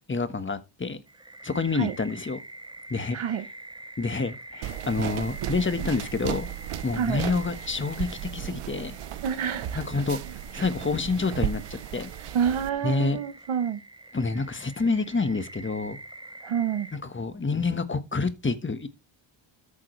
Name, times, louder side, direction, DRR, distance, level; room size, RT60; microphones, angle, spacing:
voice 1, 0.1-1.0 1.4-2.4 2.9-3.2 4.0-6.5 6.8-9.0 9.7-10.2 10.5-12.1 12.8-13.2 14.1-16.0 16.9-18.9, left 4 dB, 25° left, 1.4 m, -28 dB
sound 1, 1.1-17.0, right 2 dB, 10° right, 0.9 m, -46 dB
voice 2, 3.1-3.4 6.9-7.2 9.2-9.9 10.5-10.7 12.3-13.8 16.4-16.9, right 8 dB, 70° right, 1.1 m, -28 dB
sound 2, 4.6-12.7, right 11 dB, 90° right, 1.0 m, -35 dB
13.5 x 7.5 x 3.3 m
cardioid pair, 100°, 50 cm